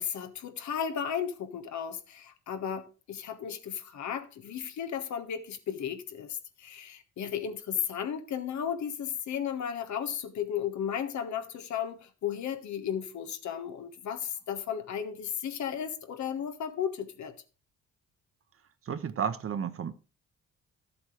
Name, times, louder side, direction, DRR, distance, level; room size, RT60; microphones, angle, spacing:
voice 1, 0.0-17.3, left 8 dB, 70° left, 1.4 m, -34 dB
voice 2, 18.9-19.9, right 7 dB, 50° right, 1.0 m, -32 dB
12.0 x 7.8 x 3.3 m
cardioid pair, 90°, 30 cm